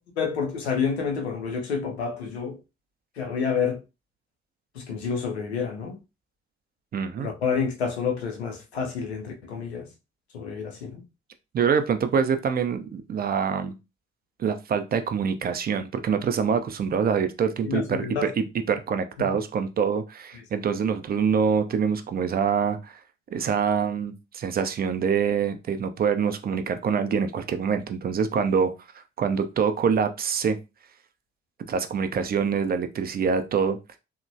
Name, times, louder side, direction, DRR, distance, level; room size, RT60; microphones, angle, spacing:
voice 1, 0.2-2.6 3.2-3.8 4.7-6.0 7.2-9.9 10.3-11.0 17.6-18.3 19.2-19.3, left 6 dB, 80° left, 0.6 m, -29 dB
voice 2, 6.9-7.3 11.5-13.7 14.4-23.0 23.3-28.7 29.2-30.6 31.7-33.8, right 6 dB, 30° right, 0.4 m, -25 dB
2.9 x 2.1 x 2.6 m
figure-of-eight pair, 40°, 32 cm